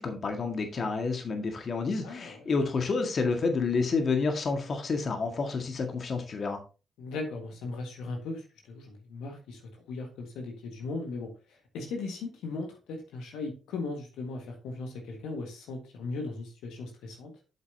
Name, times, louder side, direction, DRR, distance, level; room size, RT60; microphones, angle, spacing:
voice 1, 0.0-6.6, left 4 dB, 50° left, 5 dB, 1.7 m, -29 dB
voice 2, 2.0-2.5 7.0-9.6 9.9-17.3, left 3 dB, 70° left, 3 dB, 1.7 m, -38 dB
8.0 x 8.0 x 2.8 m, 0.32 s
hypercardioid pair, 40°, 0 cm